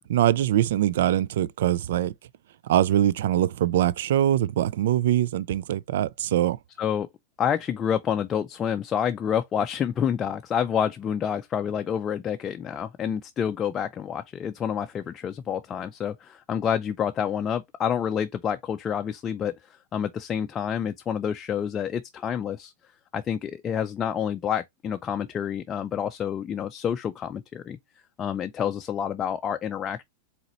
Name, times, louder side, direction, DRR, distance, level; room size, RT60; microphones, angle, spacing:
voice 1, 0.1-2.1 2.6-6.6, right 12 dB, 75° right, 0.3 m, -23 dB
voice 2, 7.4-19.6 19.9-22.7 23.1-27.8 28.2-30.0, left 8 dB, 25° left, 0.5 m, -28 dB
4.1 x 3.9 x 2.9 m
hypercardioid pair, 125°, 0 cm